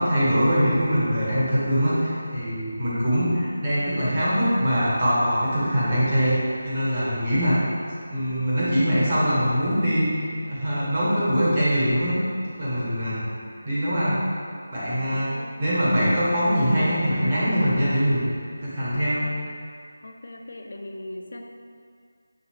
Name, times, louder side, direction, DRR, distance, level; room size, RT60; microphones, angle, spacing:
voice 1, 0.0-7.6 8.1-12.1 12.6-13.2 13.6-14.2 14.7-15.3 15.6-18.2 18.6-19.3, equal, 30° right, -9 dB, 1.2 m, -23 dB
voice 2, 15.1-15.6 20.0-21.4, left 1 dB, 55° left, 2 dB, 0.3 m, -39 dB
6.5 x 2.7 x 2.9 m, 2.2 s
figure-of-eight pair, 175°, 0 cm